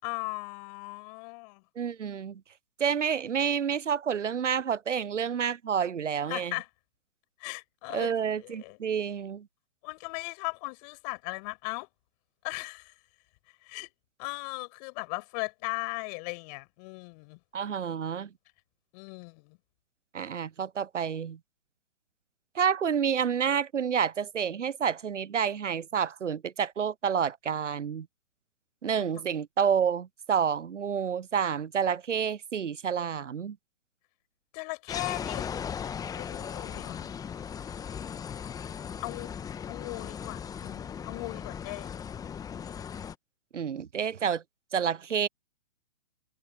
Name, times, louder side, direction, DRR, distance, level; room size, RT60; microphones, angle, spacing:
voice 1, 0.0-1.6 6.3-6.7 7.4-8.8 9.8-11.9 12.4-12.9 13.6-13.9 14.2-17.4 18.9-19.6 29.0-29.1 34.5-35.5 36.2-37.1 39.0-39.3 39.7-41.9, left 31 dB, 35° left, 6.6 m, -38 dB
voice 2, 1.8-2.4 2.8-6.5 7.9-9.5 17.5-18.3 20.1-21.4 22.5-28.1 28.8-33.6 43.5-44.4 44.7-45.3, right 7 dB, 90° right, 0.7 m, -29 dB
sound 1, 34.9-43.2, left 7 dB, 10° left, 1.2 m, -38 dB
hypercardioid pair, 130°, 35 cm